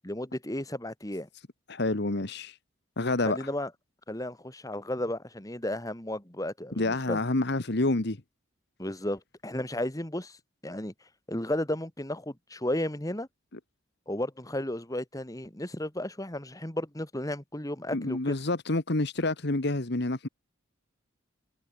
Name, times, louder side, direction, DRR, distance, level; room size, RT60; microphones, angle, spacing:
voice 1, 0.0-1.3 3.3-3.7 4.1-7.2 8.8-10.4 10.6-10.9 11.3-13.3 14.1-18.3, left 1 dB, 15° left, 2.2 m, -33 dB
voice 2, 1.7-2.5 3.0-3.4 6.8-8.2 17.9-20.3, left 2 dB, 55° left, 1.4 m, -28 dB
head